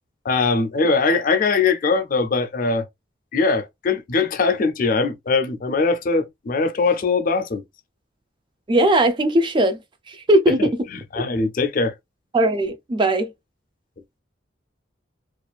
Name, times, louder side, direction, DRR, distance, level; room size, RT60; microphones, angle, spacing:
voice 1, 0.2-2.9 3.3-7.6 10.9-11.9, left 4 dB, 50° left, 0.4 m, -21 dB
voice 2, 8.7-9.8 10.1-10.7 11.2-11.3 12.3-13.3, right 1 dB, 25° right, 0.4 m, -19 dB
2.4 x 2.2 x 2.3 m
head